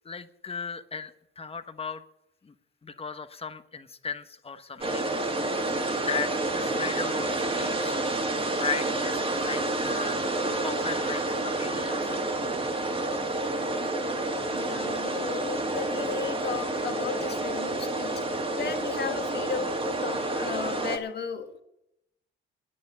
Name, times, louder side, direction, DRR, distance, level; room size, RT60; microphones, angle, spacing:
voice 1, 0.0-2.0 2.4-2.5 2.8-5.1 5.4-7.9 8.5-10.2 10.6-12.5, left 5 dB, 30° left, 1.1 m, -37 dB
sound 1, 4.8-21.0, right 2 dB, 30° right, 2.2 m, -29 dB
voice 2, 14.5-21.6, left 7 dB, 55° left, 1.8 m, -35 dB
9.8 x 9.3 x 9.7 m
cardioid pair, 90°, 20 cm